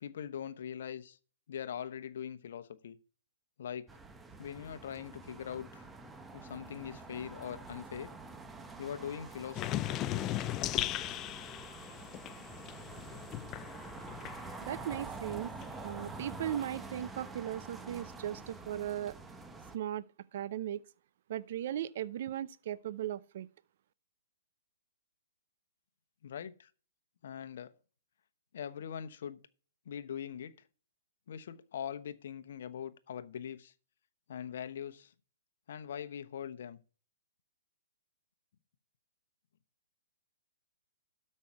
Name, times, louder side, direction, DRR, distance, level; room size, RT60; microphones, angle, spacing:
voice 1, 0.0-1.2 1.5-3.0 3.6-3.9 4.4-5.9 6.3-8.1 8.8-9.9 26.2-26.7 27.2-27.7 28.5-29.4 29.9-30.5 31.3-33.7 34.3-35.1 35.7-36.8, left 8 dB, 60° left, 1.0 m, -42 dB
sound 1, 3.9-19.8, right 3 dB, 10° right, 1.0 m, -47 dB
sound 2, 9.5-14.9 15.2-16.9, left 14 dB, 25° left, 0.5 m, -38 dB
voice 2, 14.6-15.5 15.8-19.2 19.7-20.0 20.3-20.8 21.3-23.5, right 11 dB, 55° right, 0.5 m, -37 dB
12.5 x 5.5 x 4.6 m
hypercardioid pair, 140°, 0 cm